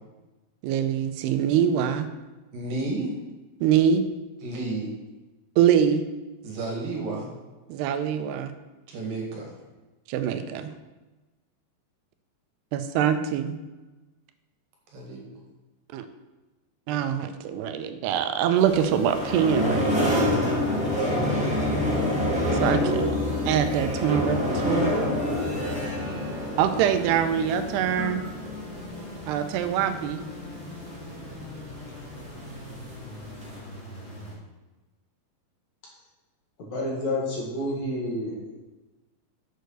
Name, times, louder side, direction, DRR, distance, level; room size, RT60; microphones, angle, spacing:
voice 1, 0.6-2.1 3.6-4.0 5.6-6.0 7.7-8.5 10.1-10.7 12.7-13.5 15.9-16.1 16.9-20.2 22.6-23.1 23.5-25.0 26.6-28.2 29.3-30.2, right 9 dB, 85° right, 9 dB, 2.8 m, -24 dB
voice 2, 2.5-3.1 4.4-4.9 6.4-7.3 8.9-9.5 14.9-15.2, right 2 dB, 60° right, 0 dB, 3.3 m, -31 dB
sound 1, 18.5-34.3, left 1 dB, 10° left, 3.1 m, -42 dB
sound 2, 18.7-33.6, left 1 dB, 10° right, 0.3 m, -28 dB
voice 3, 36.6-38.6, left 1 dB, 50° left, -4 dB, 2.8 m, -29 dB
8.0 x 6.6 x 6.5 m, 1.1 s
omnidirectional pair, 4.7 m